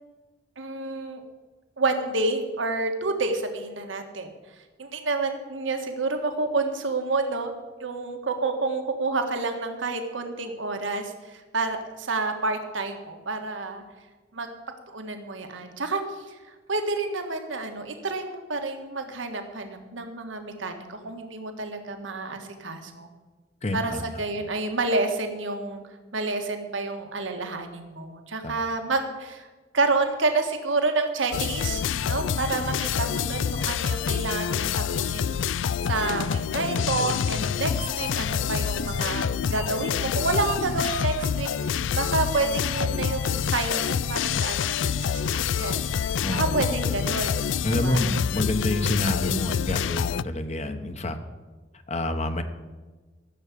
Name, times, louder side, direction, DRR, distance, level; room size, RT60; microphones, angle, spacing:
voice 1, 0.6-1.2 1.8-4.3 4.8-7.5 7.8-13.8 14.3-14.5 14.9-16.4 16.7-23.1 23.7-25.8 26.1-29.5 29.7-45.9 46.3-47.4 47.8-48.0, right 3 dB, 90° right, 5 dB, 1.6 m, -29 dB
voice 2, 23.6-24.0 28.4-28.5 46.2-46.6 47.6-51.2 51.9-52.4, left 1 dB, 35° left, 8 dB, 1.1 m, -27 dB
sound 1, 31.3-50.2, left 7 dB, 85° left, 0.4 m, -27 dB
14.0 x 7.1 x 8.6 m, 1.3 s
head